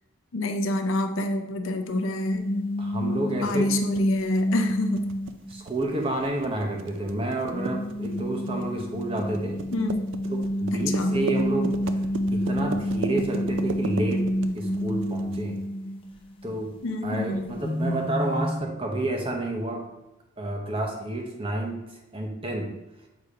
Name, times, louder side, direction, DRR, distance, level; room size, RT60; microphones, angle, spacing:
voice 1, 0.3-2.5 3.3-5.1 9.7-10.1 10.7-11.1 16.8-17.6, left 2 dB, 65° left, 5 dB, 0.6 m, -28 dB
sound 1, 1.8-5.6 6.0-6.2 7.5-16.6 16.9-17.0 17.3-18.6, equal, 25° left, 0.7 m, -28 dB
voice 2, 2.8-3.7 5.5-9.6 10.3-12.0 12.3-14.3 14.5-15.6 16.4-16.8 17.0-19.9 20.4-21.8 22.1-22.7, right 2 dB, 25° right, 2 dB, 0.8 m, -30 dB
sound 2, 3.8-15.4, right 4 dB, 60° right, 0.4 m, -36 dB
6.8 x 2.9 x 4.9 m, 0.96 s
head